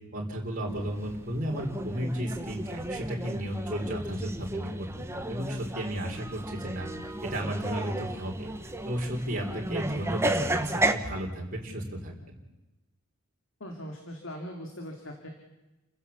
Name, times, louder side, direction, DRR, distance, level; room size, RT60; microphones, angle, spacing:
voice 1, 0.1-6.9 7.2-8.5 8.8-12.4, equal, 40° right, -2 dB, 3.8 m, -34 dB
Train Luzern-Engelberg, 0.7-10.9, right 1 dB, 10° right, 1.2 m, -33 dB
voice 2, 13.6-15.3, equal, 60° left, 3 dB, 2.8 m, -41 dB
29.5 x 15.5 x 7.1 m, 1.0 s
head